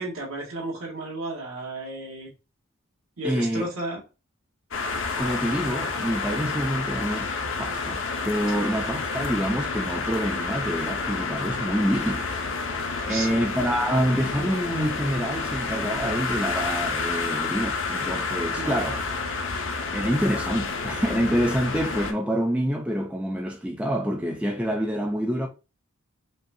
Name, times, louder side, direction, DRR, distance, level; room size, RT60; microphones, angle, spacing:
voice 1, 0.0-2.3 3.2-4.0 8.5-8.7 13.1-13.5 18.6-18.9, right 1 dB, 75° right, 1.8 m, -33 dB
voice 2, 3.2-3.6 5.2-7.3 7.6-8.0 8.2-12.4 13.1-19.0 19.9-25.5, equal, 5° right, 0.4 m, -27 dB
sound 1, 4.7-22.1, left 4 dB, 60° left, 0.6 m, -29 dB
5.2 x 2.3 x 2.7 m
head